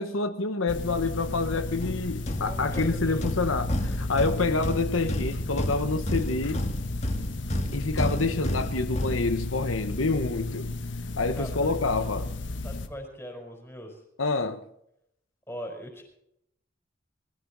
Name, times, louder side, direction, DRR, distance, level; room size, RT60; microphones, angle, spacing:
voice 1, 0.0-6.7 7.7-10.7 11.2-12.3 14.2-14.6, left 3 dB, 90° left, 1.2 m, -27 dB
sound 1, 0.7-12.9, left 2 dB, 65° left, 1.4 m, -34 dB
sound 2, 1.8-9.8, equal, 35° left, 1.8 m, -32 dB
voice 2, 2.5-3.3 11.3-11.8 12.6-14.0 15.5-16.0, equal, 10° left, 4.7 m, -40 dB
20.5 x 15.0 x 4.1 m
head